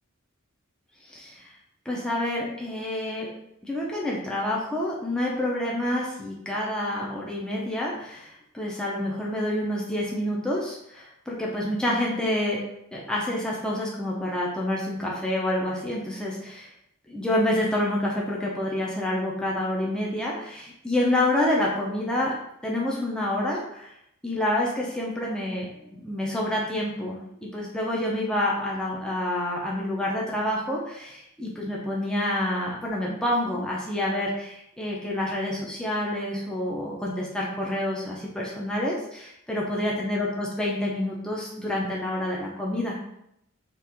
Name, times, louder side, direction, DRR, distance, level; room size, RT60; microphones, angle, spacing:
voice 1, 1.1-1.5 1.9-3.3 3.6-16.7 17.1-22.4 22.6-23.9 24.2-43.0, left 1 dB, 5° left, -4 dB, 0.4 m, -28 dB
2.9 x 2.4 x 3.5 m, 0.78 s
head